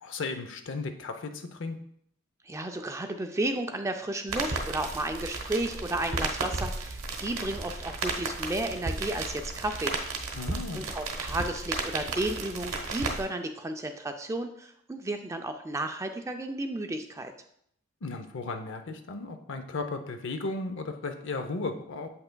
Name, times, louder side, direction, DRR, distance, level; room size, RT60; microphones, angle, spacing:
voice 1, 0.0-1.8 10.3-10.8 18.0-22.1, left 3 dB, 60° left, 7 dB, 0.6 m, -35 dB
voice 2, 2.5-10.0 10.7-17.3, right 2 dB, 15° right, 6 dB, 0.4 m, -33 dB
sound 1, 4.3-13.2, right 3 dB, 70° right, 1.0 m, -34 dB
7.8 x 5.6 x 2.2 m, 0.69 s
head